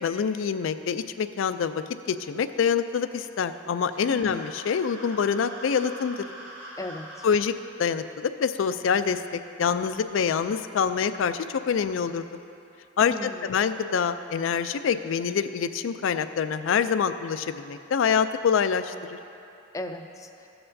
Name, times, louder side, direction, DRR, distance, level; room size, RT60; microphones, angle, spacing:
voice 1, 0.0-6.2 7.2-7.5 7.8-12.3 13.0-19.2, left 6 dB, 80° left, 11 dB, 0.4 m, -26 dB
sound 1, 3.8-7.3, right 1 dB, 85° right, 2.1 m, -43 dB
voice 2, 4.1-4.4 6.8-7.3 13.0-13.5 19.7-20.5, left 1 dB, 15° left, 5 dB, 0.4 m, -37 dB
14.5 x 7.8 x 2.6 m, 2.8 s
head